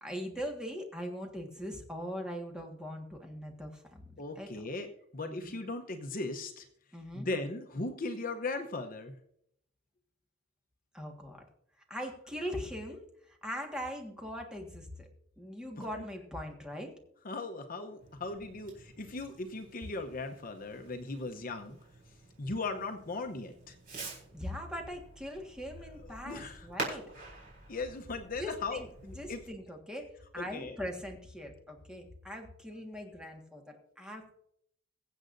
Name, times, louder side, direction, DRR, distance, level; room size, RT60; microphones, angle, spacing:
voice 1, 0.0-4.5 5.3-5.5 6.9-7.3 10.9-11.4 11.9-15.1 15.4-16.9 24.3-27.1 28.4-34.3, equal, 5° right, 2 dB, 1.6 m, -41 dB
voice 2, 4.2-6.7 7.1-9.2 15.8-16.0 17.2-21.8 22.4-23.8 26.0-27.0 27.7-28.8 29.3-29.4 30.3-30.8, left 3 dB, 45° left, 5 dB, 0.8 m, -38 dB
Fireworks, 18.0-29.4, right 2 dB, 45° right, 4.1 m, -47 dB
22.5 x 7.7 x 2.6 m, 0.72 s
head